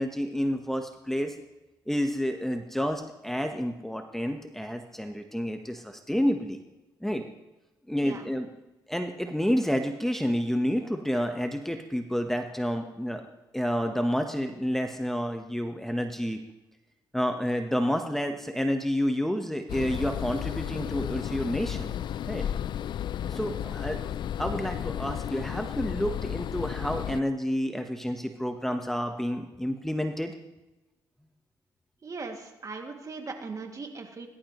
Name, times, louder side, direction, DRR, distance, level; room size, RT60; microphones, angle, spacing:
voice 1, 0.0-1.3 1.9-6.6 7.0-7.2 7.9-8.5 8.9-13.2 13.5-16.4 17.1-21.9 22.3-22.5 23.2-24.0 24.4-30.3, equal, 5° left, 5 dB, 1.1 m, -29 dB
sound 1, 19.7-27.2, left 10 dB, 65° left, 0.4 m, -33 dB
voice 2, 23.2-24.0 32.0-34.3, right 4 dB, 40° right, 3 dB, 2.2 m, -40 dB
20.0 x 11.5 x 3.1 m, 1.0 s
cardioid pair, 70°, 8 cm